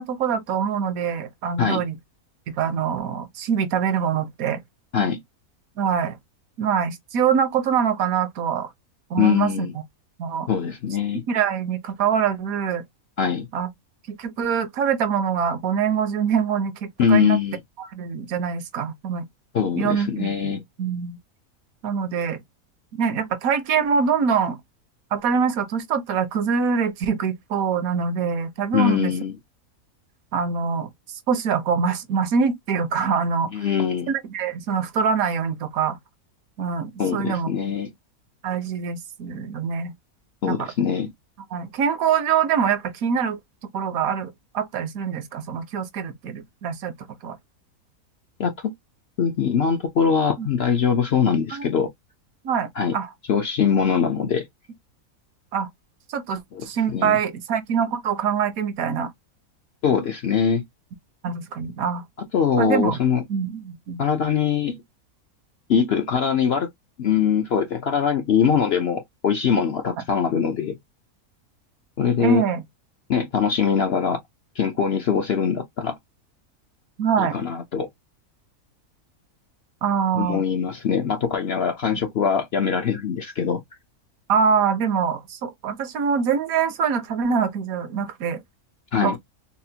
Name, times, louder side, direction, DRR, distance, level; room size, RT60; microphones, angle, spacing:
voice 1, 0.0-1.9 2.6-4.6 5.8-6.1 6.6-8.7 9.1-9.7 10.2-10.5 11.3-12.8 13.5-13.7 14.1-17.4 17.8-19.2 19.7-21.2 21.8-22.4 22.9-24.6 25.1-29.1 30.3-33.5 34.1-36.0 36.6-37.5 38.4-39.9 40.5-40.7 41.5-43.4 43.7-46.9 47.2-47.4 50.4-50.5 51.5-51.7 52.4-53.1 55.5-55.7 56.1-59.1 61.2-62.0 62.6-63.0 63.3-64.0 72.2-72.6 77.0-77.4 79.8-80.4 84.3-88.4 89.0-89.2, right 6 dB, 75° right, 1.1 m, -24 dB
voice 2, 9.2-9.7 10.5-11.2 13.2-13.5 17.0-17.6 19.5-20.6 28.7-29.4 33.5-34.1 37.0-37.9 40.4-41.1 48.4-48.7 49.2-51.9 52.8-53.0 53.3-54.5 56.5-57.2 59.8-60.6 62.2-63.2 64.0-64.8 65.7-66.7 67.0-70.8 72.0-72.5 73.1-74.2 74.6-76.0 77.2-77.9 80.1-83.6 88.9-89.2, left 7 dB, 60° left, 0.7 m, -22 dB
4.1 x 2.0 x 2.7 m
omnidirectional pair, 1.5 m